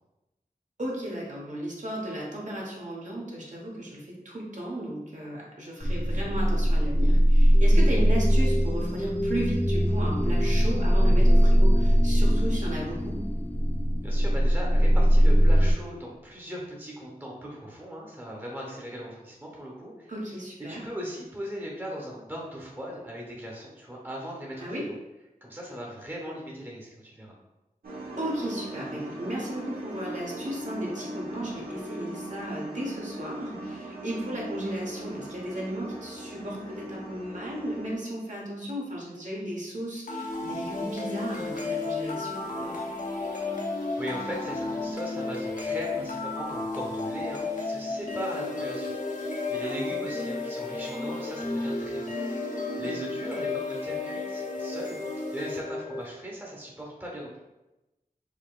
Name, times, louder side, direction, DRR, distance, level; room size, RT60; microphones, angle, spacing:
voice 1, 0.8-13.3 20.1-20.9 24.6-24.9 28.2-42.8 49.6-49.9 52.7-53.0, right 1 dB, 55° right, -3 dB, 1.0 m, -35 dB
sound 1, 5.8-15.7, equal, 10° left, 0.3 m, -21 dB
voice 2, 14.0-20.1 20.7-24.9 25.4-27.3 43.7-48.9 49.2-52.1 52.8-55.0 55.3-57.4, equal, 15° right, -3 dB, 0.9 m, -38 dB
sound 2, 27.8-37.9, right 1 dB, 80° right, 0.8 m, -39 dB
sound 3, 40.1-56.1, left 3 dB, 55° left, 0.8 m, -33 dB
4.9 x 2.9 x 2.3 m, 0.99 s
wide cardioid pair, 75°, 15 cm